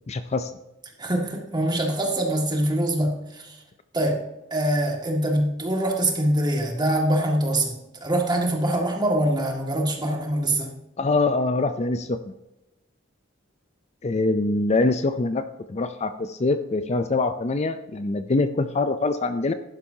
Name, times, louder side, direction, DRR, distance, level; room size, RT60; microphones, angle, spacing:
voice 1, 0.1-0.5 11.0-12.2 14.0-15.4 15.7-19.5, left 3 dB, 35° left, 10 dB, 0.5 m, -24 dB
voice 2, 1.0-3.6 3.9-4.2 4.5-10.7, right 1 dB, 25° right, 1 dB, 2.0 m, -24 dB
11.5 x 10.0 x 2.8 m, 0.95 s
head